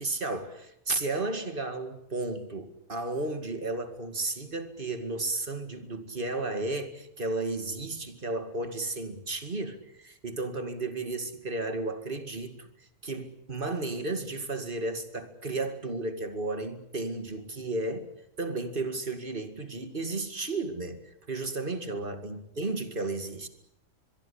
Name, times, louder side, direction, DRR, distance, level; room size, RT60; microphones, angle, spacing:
voice 1, 0.0-18.1 18.4-23.5, right 2 dB, 45° right, 2.4 m, -33 dB
23.0 x 23.0 x 8.6 m
omnidirectional pair, 1.3 m